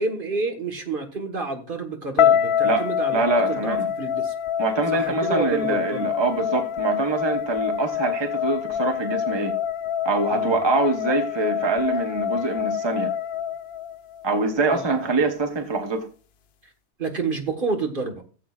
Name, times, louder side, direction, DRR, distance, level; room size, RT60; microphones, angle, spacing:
voice 1, 0.0-4.3 4.9-6.1 10.3-10.6 14.7-15.1 17.0-18.2, right 3 dB, 55° right, 5 dB, 1.6 m, -29 dB
sound 1, 2.2-14.3, left 9 dB, 75° left, 0.8 m, -26 dB
voice 2, 3.1-3.9 4.6-9.5 10.0-13.1 14.2-16.1, right 3 dB, 25° right, 5 dB, 1.0 m, -24 dB
16.0 x 7.7 x 2.4 m, 0.36 s
omnidirectional pair, 1.1 m